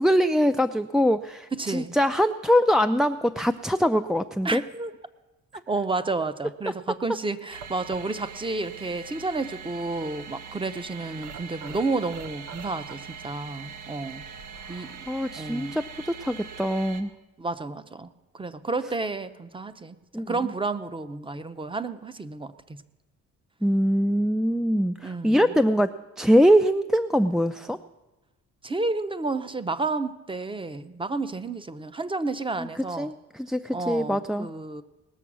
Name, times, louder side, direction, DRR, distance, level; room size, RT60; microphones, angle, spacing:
voice 1, 0.0-4.6 14.7-17.1 20.1-20.5 23.6-27.8 32.6-34.5, equal, ahead, 7 dB, 0.4 m, -23 dB
voice 2, 1.6-1.9 4.4-4.9 5.7-14.2 14.7-15.1 15.4-15.8 17.4-20.0 20.3-22.8 25.0-25.4 28.6-33.1 33.7-34.8, right 3 dB, 15° right, 12 dB, 0.8 m, -31 dB
sound 1, 7.5-17.0, right 6 dB, 80° right, 1.2 m, -42 dB
19.5 x 7.0 x 6.2 m, 1.0 s
cardioid pair, 90°, 30 cm